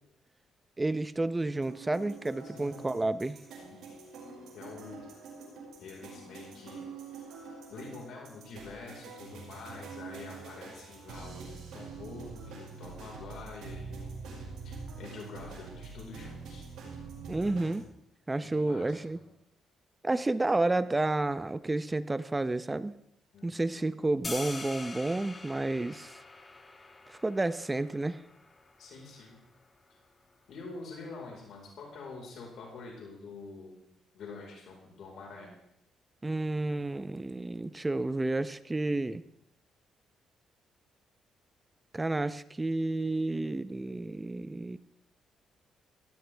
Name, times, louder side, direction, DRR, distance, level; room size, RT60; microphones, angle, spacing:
voice 1, 0.8-3.4 17.3-17.8 18.3-19.2 20.0-22.9 23.4-26.2 27.1-28.2 36.2-39.2 41.9-44.8, right 2 dB, 15° right, 14 dB, 0.7 m, -30 dB
sound 1, 1.6-17.8, right 4 dB, 80° right, 5.8 m, -45 dB
voice 2, 2.5-2.9 3.7-3.8 4.5-5.0 5.8-7.3 7.7-14.2 14.6-16.7 18.3-19.3 23.3-23.7 28.8-29.4 30.5-33.8 34.1-35.5, left 3 dB, 70° left, -1 dB, 4.6 m, -46 dB
sound 2, 24.2-30.3, left 3 dB, 25° left, 1.5 m, -45 dB
17.0 x 16.5 x 3.5 m, 0.78 s
cardioid pair, 90°, 0 cm